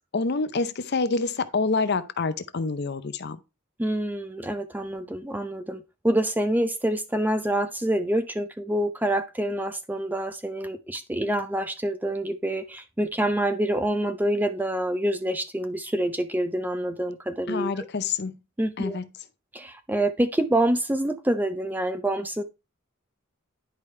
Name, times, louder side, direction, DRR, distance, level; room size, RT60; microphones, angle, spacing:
voice 1, 0.1-3.4 17.5-18.3 18.8-19.1, left 4 dB, 55° left, 0.6 m, -27 dB
voice 2, 3.8-17.9 18.6-19.0 19.5-22.4, right 1 dB, 10° right, 0.5 m, -26 dB
10.5 x 4.8 x 3.2 m
head